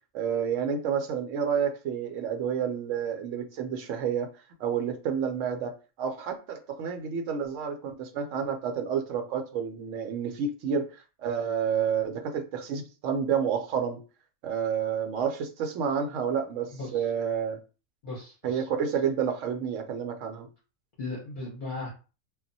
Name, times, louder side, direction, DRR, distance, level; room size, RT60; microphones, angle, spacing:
voice 1, 0.1-4.3 4.6-14.0 14.4-17.6 18.4-20.5, right 7 dB, 75° right, 5 dB, 0.9 m, -29 dB
voice 2, 16.7-17.1 18.0-18.7 21.0-21.9, left 2 dB, 45° left, -4 dB, 0.8 m, -37 dB
2.3 x 2.1 x 3.9 m, 0.34 s
omnidirectional pair, 1.4 m